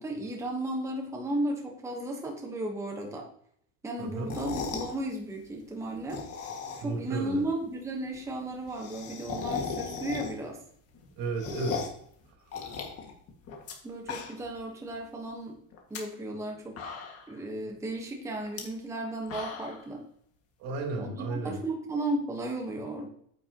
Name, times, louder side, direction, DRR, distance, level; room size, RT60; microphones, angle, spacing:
voice 1, 0.0-3.3 3.8-6.2 6.8-10.6 13.8-15.6 15.9-16.8 17.3-20.0 21.0-23.1, right 1 dB, 10° right, 1 dB, 1.1 m, -34 dB
voice 2, 4.0-4.3 6.8-7.4 11.2-11.8 20.6-21.6, right 3 dB, 70° right, 1 dB, 3.4 m, -33 dB
sound 1, 4.2-4.9 5.9-7.0 7.4-7.5 7.7-7.8 8.0-8.1 8.4-10.6 10.9-12.0 12.5-13.7 14.0-14.6 14.9-15.0 15.7-16.0 16.5-16.6 16.8-17.4 18.4-18.6 19.0-19.8, left 5 dB, 45° left, 1.9 m, -37 dB
9.1 x 8.5 x 2.9 m, 0.66 s
cardioid pair, 160°, 34 cm